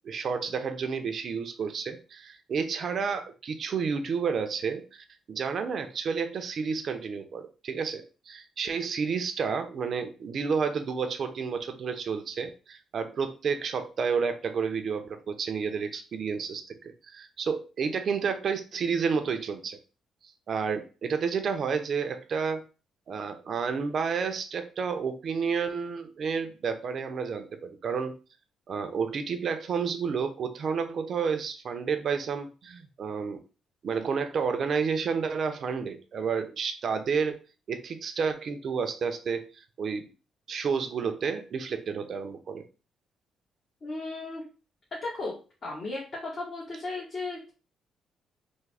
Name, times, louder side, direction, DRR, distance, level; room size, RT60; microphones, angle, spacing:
voice 1, 0.0-19.8 20.5-22.6 23.1-28.1 28.7-33.4 33.8-37.4 37.7-40.1 40.5-42.6, right 5 dB, 55° right, 8 dB, 0.5 m, -30 dB
voice 2, 43.8-44.4 44.9-45.3 45.6-47.5, left 2 dB, 50° left, -5 dB, 1.1 m, -35 dB
3.5 x 2.1 x 3.3 m, 0.34 s
cardioid pair, 90°, 0 cm